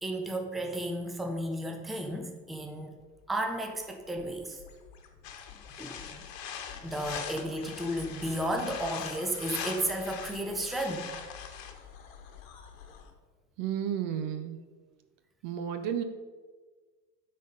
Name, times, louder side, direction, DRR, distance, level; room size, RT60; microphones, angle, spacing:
voice 1, 0.0-3.0 3.3-4.6 5.8-6.0 6.8-11.1, right 1 dB, ahead, 3 dB, 0.7 m, -33 dB
sound 1, 3.2-13.1, left 7 dB, 55° left, 1.3 m, -50 dB
sound 2, 5.2-11.7, left 7 dB, 75° left, 1.2 m, -42 dB
voice 2, 13.6-14.6 15.4-16.0, right 9 dB, 40° right, 9 dB, 0.7 m, -32 dB
9.2 x 4.3 x 5.1 m, 1.4 s
hypercardioid pair, 95°, 50 cm